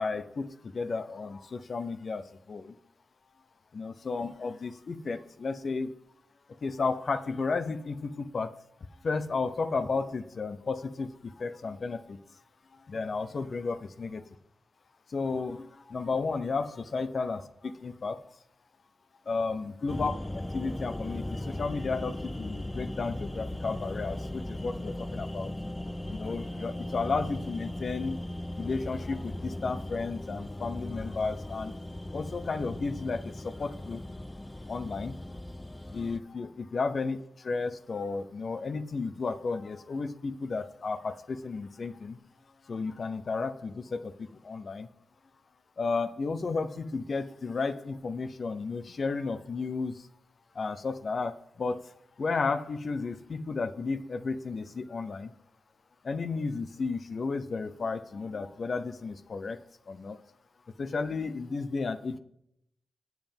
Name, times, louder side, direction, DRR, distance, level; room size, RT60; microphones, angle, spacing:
voice 1, 0.0-2.7 3.7-5.9 6.6-8.5 9.0-12.2 12.9-14.2 15.1-18.2 19.3-25.5 26.1-28.2 28.6-31.7 32.1-34.0 34.7-35.3 35.9-42.2 42.7-44.9 45.8-50.1 50.5-51.8 52.2-55.3 56.0-59.6 59.9-60.2 60.8-62.2, left 4 dB, 60° left, 11 dB, 0.6 m, -33 dB
sound 1, 19.9-36.2, left 1 dB, 20° left, 0.5 m, -38 dB
7.5 x 7.2 x 5.3 m, 0.74 s
supercardioid pair, 45°, 0 cm